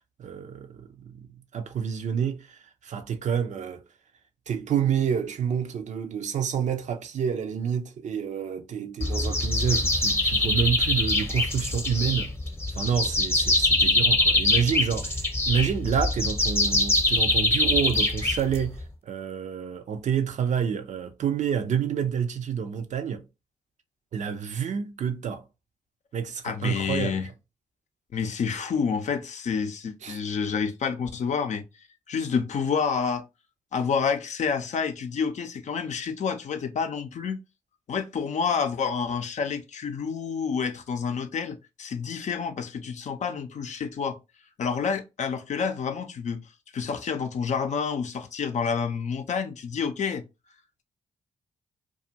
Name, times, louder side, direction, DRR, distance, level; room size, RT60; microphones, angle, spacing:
voice 1, 0.2-1.3 1.5-3.8 4.5-12.3 12.8-23.2 24.1-25.4 26.1-27.2 30.0-30.2, right 7 dB, 55° right, 0.5 m, -28 dB
sound 1, 9.0-18.8, left 2 dB, 15° left, 0.8 m, -24 dB
voice 2, 26.4-27.3 28.1-31.6 32.1-33.2 33.7-37.4 37.9-44.2 44.6-46.4 46.7-50.2, left 6 dB, 55° left, 0.5 m, -28 dB
2.4 x 2.3 x 2.7 m
hypercardioid pair, 40°, 14 cm